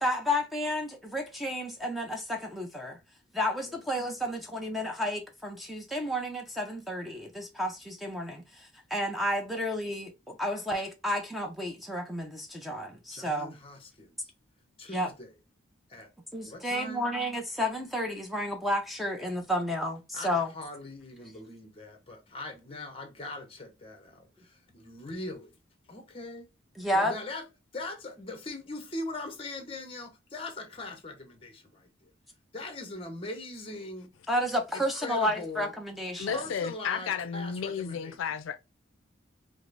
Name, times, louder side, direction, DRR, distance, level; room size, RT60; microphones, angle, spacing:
voice 1, 0.0-3.0 3.3-13.6 14.9-15.1 16.3-20.5 26.8-27.1 34.3-36.4, equal, ahead, 0.5 m, -31 dB
voice 2, 13.1-14.2 14.8-15.3 15.9-16.1 16.4-17.1 20.1-25.6 25.9-26.5 26.9-27.5 27.7-32.1 32.5-34.1 34.7-35.7 36.2-38.2, left 2 dB, 30° left, 0.8 m, -41 dB
voice 3, 36.2-38.6, left 7 dB, 80° left, 0.3 m, -33 dB
4.9 x 2.0 x 2.5 m
head